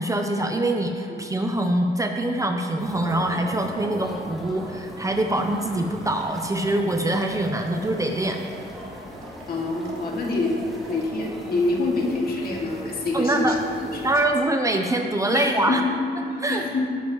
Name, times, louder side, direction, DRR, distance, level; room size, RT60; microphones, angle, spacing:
voice 1, 0.0-8.4 13.1-13.6 14.0-15.8 16.4-16.6, right 1 dB, 15° right, 4 dB, 0.6 m, -24 dB
sound 1, 2.8-14.2, equal, ahead, 2.3 m, -39 dB
sound 2, 5.6-6.7 7.0-11.0, right 3 dB, 90° right, 2.1 m, -44 dB
voice 2, 9.5-14.1 15.3-15.9 16.2-16.8, left 2 dB, 50° left, -1 dB, 2.1 m, -26 dB
18.0 x 7.3 x 3.0 m, 2.3 s
cardioid pair, 115°, 20 cm